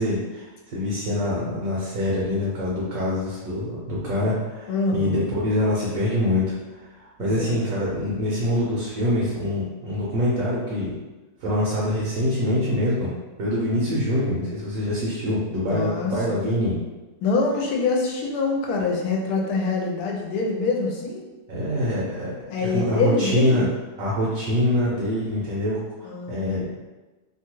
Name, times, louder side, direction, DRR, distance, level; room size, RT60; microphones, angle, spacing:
voice 1, 0.0-10.9 11.4-13.1 13.4-16.8 21.5-23.7 24.0-26.7, left 1 dB, 65° right, -6 dB, 1.1 m, -25 dB
voice 2, 4.7-5.3 7.2-7.6 15.7-16.5 17.2-21.3 22.5-23.7 26.0-26.7, left 4 dB, 75° left, -1 dB, 1.1 m, -25 dB
2.9 x 2.3 x 2.9 m, 1.1 s
omnidirectional pair, 1.7 m